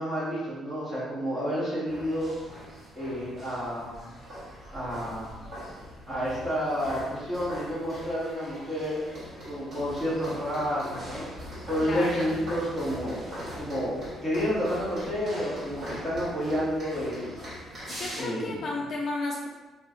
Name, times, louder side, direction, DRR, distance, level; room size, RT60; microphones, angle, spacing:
voice 1, 0.0-2.3 2.9-4.2 4.7-5.4 6.1-9.0 9.5-17.4 18.1-18.6, equal, ahead, -10 dB, 1.3 m, -30 dB
sound 1, 1.9-18.2, equal, 25° right, 1.5 m, -41 dB
voice 2, 11.8-12.3 17.9-19.5, left 2 dB, 50° left, -2 dB, 0.4 m, -33 dB
2.9 x 2.2 x 3.7 m, 1.1 s
cardioid pair, 145°, 0 cm